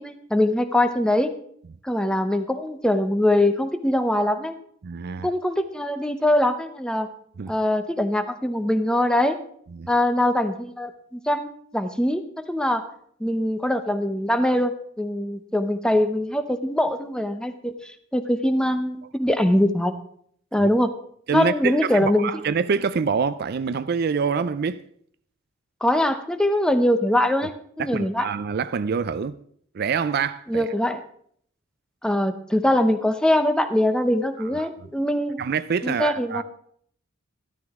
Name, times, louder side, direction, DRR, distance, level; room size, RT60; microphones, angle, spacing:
voice 1, 0.0-1.4 1.8-4.6 5.2-7.1 7.5-9.4 9.9-12.8 13.2-20.0 20.5-21.0 21.3-22.3 25.8-28.3 30.5-31.0 32.0-35.4 35.8-36.4, left 1 dB, 5° left, 0.7 m, -22 dB
voice 2, 4.8-5.3 7.4-7.5 9.7-9.9 20.6-20.7 21.3-24.8 27.8-29.4 29.7-30.7 34.6-34.7 35.4-36.4, right 6 dB, 50° right, 0.4 m, -26 dB
12.5 x 12.5 x 3.6 m
head